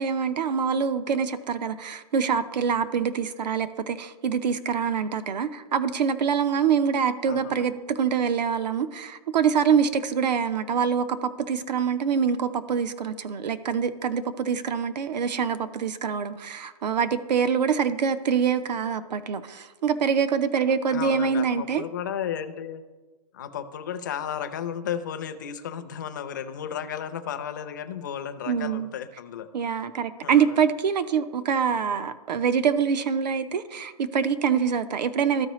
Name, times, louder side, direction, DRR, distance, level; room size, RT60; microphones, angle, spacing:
voice 1, 0.0-21.8 28.5-28.9 29.5-35.5, right 7 dB, 90° right, 12 dB, 0.6 m, -25 dB
voice 2, 7.2-7.7 20.9-22.8 23.3-29.9 30.2-30.6, left 8 dB, 30° left, 8 dB, 0.4 m, -34 dB
14.0 x 4.8 x 3.0 m, 1.3 s
hypercardioid pair, 175°, 21 cm